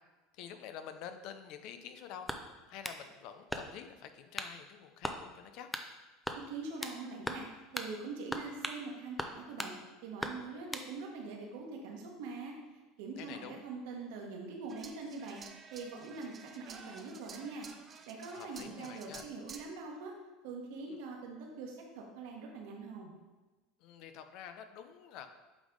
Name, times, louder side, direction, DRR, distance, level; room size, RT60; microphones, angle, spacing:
voice 1, 0.3-2.3 2.7-5.7 13.2-13.6 18.3-19.3 20.9-21.0 23.8-25.3, left 8 dB, 60° left, 8 dB, 0.6 m, -48 dB
sound 1, 2.2-3.0 3.5-3.9 4.4-4.6 5.0-5.2 5.7-5.9 6.2-7.0 7.3-7.5 7.7-7.9 8.3-8.8 9.2-9.7 10.2-10.9, left 1 dB, 5° left, 0.6 m, -39 dB
voice 2, 6.3-7.4 7.7-9.7 10.0-12.5 13.0-17.7 18.1-20.1 20.4-23.1, right 4 dB, 70° right, 0 dB, 1.4 m, -43 dB
sound 2, 14.7-19.7, right 5 dB, 30° right, 0.7 m, -52 dB
8.3 x 3.5 x 3.8 m, 1.2 s
hypercardioid pair, 90°, 0 cm